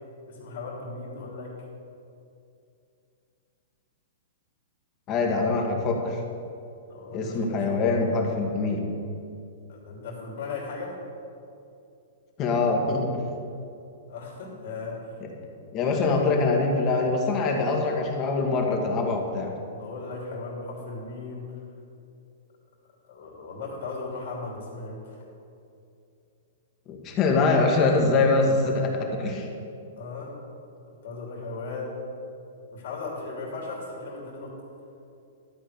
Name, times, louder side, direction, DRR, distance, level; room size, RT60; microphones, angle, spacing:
voice 1, 0.3-1.5 6.9-7.9 9.7-10.9 14.1-15.1 16.0-16.1 19.7-21.6 23.0-25.2 30.0-30.3 31.0-32.0 32.7-34.5, left 3 dB, 65° left, -2 dB, 2.9 m, -37 dB
voice 2, 5.1-6.2 7.1-8.8 12.4-13.1 15.2-15.3 15.7-19.5 26.9-29.5, left 3 dB, 30° left, 1 dB, 1.7 m, -24 dB
12.0 x 4.9 x 8.4 m, 2.6 s
hypercardioid pair, 145°, 0 cm